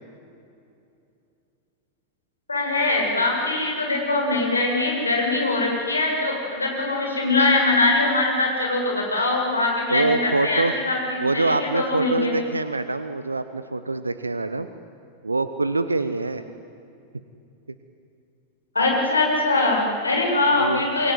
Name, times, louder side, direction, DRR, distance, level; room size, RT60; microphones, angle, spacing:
voice 1, 2.5-12.4 18.7-21.1, left 2 dB, 80° left, 0 dB, 7.5 m, -22 dB
voice 2, 9.9-10.7 11.2-14.7 15.2-16.4 20.5-20.8, right 3 dB, 80° right, 11 dB, 1.1 m, -25 dB
27.5 x 22.5 x 9.6 m, 2.6 s
figure-of-eight pair, 90°, 0 cm